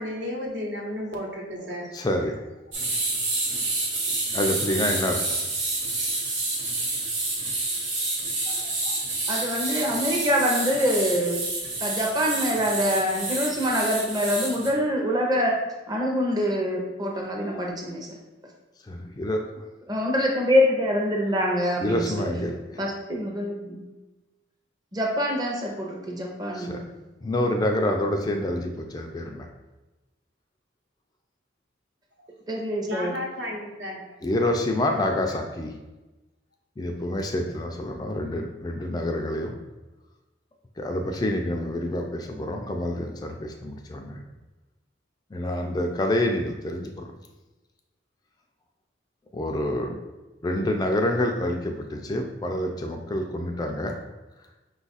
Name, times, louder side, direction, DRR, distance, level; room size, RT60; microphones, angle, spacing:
voice 1, 0.0-1.9 8.4-8.9 32.9-34.0, left 1 dB, 70° right, -1 dB, 1.0 m, -33 dB
voice 2, 1.9-2.3 4.3-5.2 18.9-19.5 21.8-22.8 26.5-26.8 27.2-29.5 34.2-35.7 36.8-39.5 40.8-44.2 45.3-47.1 49.3-49.9 50.4-54.0, left 1 dB, 20° left, 3 dB, 0.3 m, -27 dB
sound 1, 2.7-14.7, right 2 dB, 85° right, 1.3 m, -28 dB
voice 3, 9.3-11.4 11.8-18.1 19.9-22.5 22.8-23.8 24.9-27.0 32.5-33.2, equal, 20° right, -1 dB, 0.6 m, -25 dB
5.3 x 2.4 x 4.0 m, 1.1 s
head